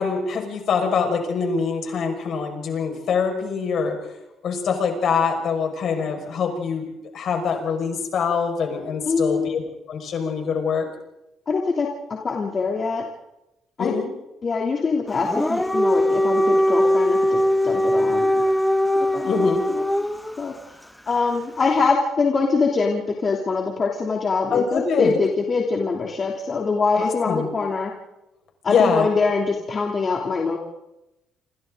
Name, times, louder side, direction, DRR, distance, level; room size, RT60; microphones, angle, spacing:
voice 1, 0.0-4.0 4.4-6.8 7.1-9.6 9.9-10.9 13.8-14.1 19.2-19.6 24.5-25.1 27.0-27.5 28.7-29.1, left 6 dB, 55° left, 3 dB, 5.6 m, -24 dB
voice 2, 9.1-9.5 11.5-13.1 13.8-13.9 14.4-18.5 18.9-19.4 20.4-20.5 21.1-27.9 28.6-30.6, left 4 dB, 35° left, -1 dB, 3.0 m, -23 dB
Dog, 15.2-20.3, left 1 dB, 5° left, 0.9 m, -20 dB
28.0 x 27.0 x 3.9 m, 0.89 s
cardioid pair, 120°, 0 cm